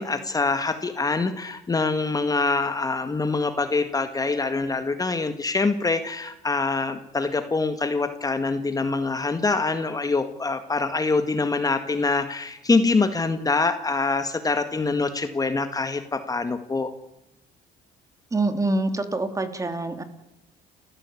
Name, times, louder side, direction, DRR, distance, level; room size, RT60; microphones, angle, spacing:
voice 1, 0.0-16.9, left 3 dB, 20° left, 9 dB, 1.8 m, -25 dB
voice 2, 18.3-20.0, right 2 dB, 20° right, 9 dB, 2.6 m, -25 dB
29.5 x 15.0 x 8.5 m, 0.88 s
cardioid pair, 110°, 17 cm